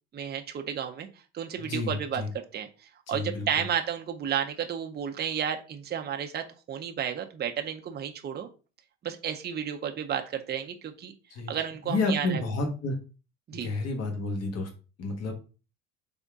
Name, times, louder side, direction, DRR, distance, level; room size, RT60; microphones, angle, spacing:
voice 1, 0.1-1.1 1.3-8.5 9.0-11.1 11.5-12.4 13.5-13.7, right 8 dB, 30° right, 5 dB, 0.7 m, -32 dB
voice 2, 1.6-2.3 3.1-3.4 11.3-11.5 11.8-13.0 13.6-14.7 15.0-15.3, left 2 dB, 50° left, 4 dB, 1.4 m, -30 dB
4.0 x 3.5 x 3.6 m, 0.33 s
cardioid pair, 105°, 33 cm